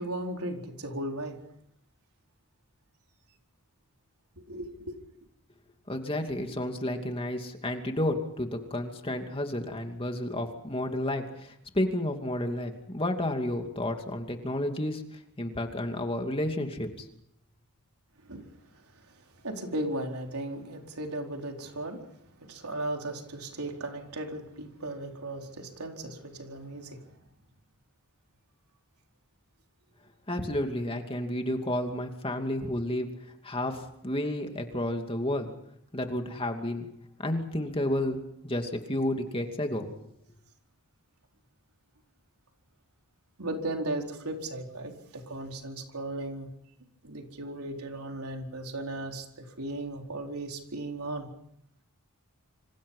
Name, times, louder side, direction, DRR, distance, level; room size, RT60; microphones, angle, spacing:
voice 1, 0.0-1.4 4.4-5.0 18.3-18.4 19.4-22.0 22.4-27.2 43.4-46.5 47.0-51.3, right 1 dB, 90° right, 2 dB, 4.3 m, -36 dB
voice 2, 5.9-17.1 30.3-35.5 35.9-36.9 37.2-39.9, left 1 dB, 25° left, 4 dB, 2.6 m, -31 dB
27.0 x 26.5 x 5.6 m, 0.71 s
head